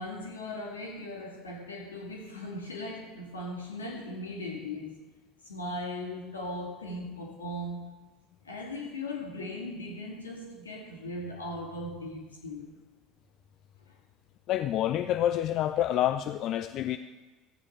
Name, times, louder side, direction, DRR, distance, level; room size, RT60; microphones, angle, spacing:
voice 1, 0.0-5.0 5.4-7.9 8.4-12.7 13.8-14.0, left 1 dB, 80° left, 2.0 m, -38 dB
voice 2, 14.5-17.0, left 12 dB, 45° left, 0.4 m, -28 dB
15.0 x 8.3 x 4.3 m
figure-of-eight pair, 65°, 0 cm